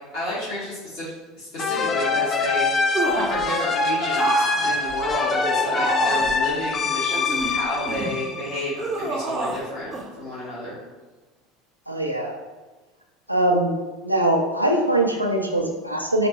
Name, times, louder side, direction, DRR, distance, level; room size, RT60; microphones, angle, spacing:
voice 1, 0.1-10.8, equal, 50° left, -10 dB, 1.5 m, -31 dB
sound 1, 1.6-9.0, left 4 dB, 30° left, 0.4 m, -24 dB
sound 2, 2.9-3.5 4.1-6.4 7.1-8.2 8.8-9.6 9.9-10.1, right 2 dB, 25° right, 0.6 m, -28 dB
voice 2, 11.9-12.4 13.3-13.7 14.0-16.3, right 1 dB, 90° right, 1 dB, 0.5 m, -22 dB
4.2 x 2.9 x 3.0 m, 1.2 s
figure-of-eight pair, 70°, 0 cm